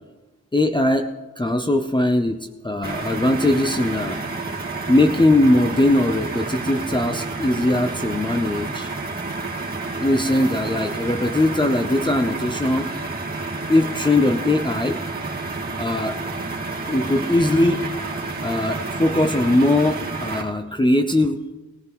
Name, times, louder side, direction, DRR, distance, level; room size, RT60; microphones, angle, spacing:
voice 1, 0.5-4.2 4.9-8.9 10.0-12.9 13.7-15.0 15.8-16.2 16.9-17.9 18.4-21.5, left 1 dB, 15° left, 6 dB, 0.6 m, -20 dB
sound 1, 2.8-20.4, right 3 dB, 30° right, 1.9 m, -30 dB
19.5 x 15.0 x 3.1 m, 1.2 s
wide cardioid pair, 75°, 30 cm